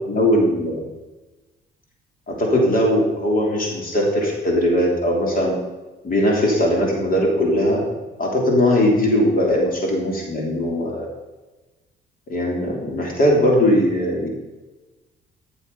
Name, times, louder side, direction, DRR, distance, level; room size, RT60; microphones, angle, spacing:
voice 1, 0.1-0.8 2.3-5.6 6.0-7.8 8.2-11.1 12.3-14.3, left 1 dB, 45° left, -1 dB, 3.3 m, -19 dB
13.0 x 7.2 x 5.6 m, 1.2 s
cardioid pair, 90°, 20 cm